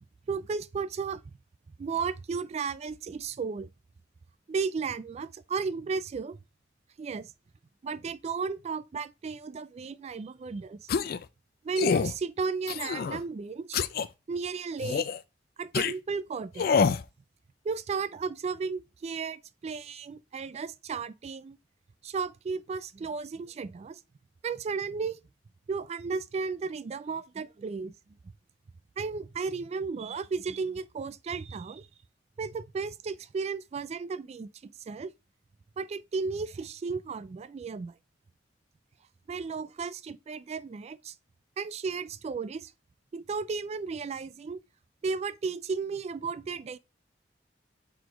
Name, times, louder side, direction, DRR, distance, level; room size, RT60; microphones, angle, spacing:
voice 1, 0.3-1.2 1.8-3.7 4.5-6.4 7.0-7.3 7.8-10.8 11.6-13.8 14.3-15.0 15.6-16.8 17.6-21.6 22.0-24.0 24.4-25.2 25.7-27.9 29.0-31.9 32.4-35.1 35.8-37.9 39.3-41.1 41.6-42.7 43.1-44.6 45.0-46.8, right 5 dB, 35° right, 0.3 m, -34 dB
sound 1, 10.9-11.2 11.8-12.1 12.7-13.2 13.7-14.1 14.8-15.2 15.7-15.9 16.6-17.0, left 6 dB, 55° left, 0.4 m, -26 dB
4.8 x 4.0 x 4.9 m
head